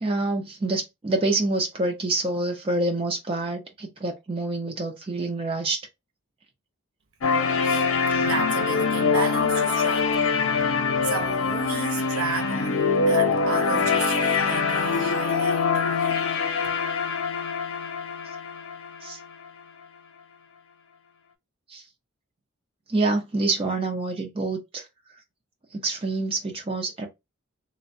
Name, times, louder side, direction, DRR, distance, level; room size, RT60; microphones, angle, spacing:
voice 1, 0.0-5.8 8.1-8.2 19.0-19.2 21.7-21.8 22.9-24.9 25.7-27.1, right 2 dB, 25° right, 0.4 m, -27 dB
sound 1, 7.2-19.2, left 5 dB, 80° left, 0.6 m, -24 dB
voice 2, 7.6-10.3 11.0-16.2, right 5 dB, 75° right, 0.6 m, -34 dB
3.1 x 2.0 x 2.6 m
head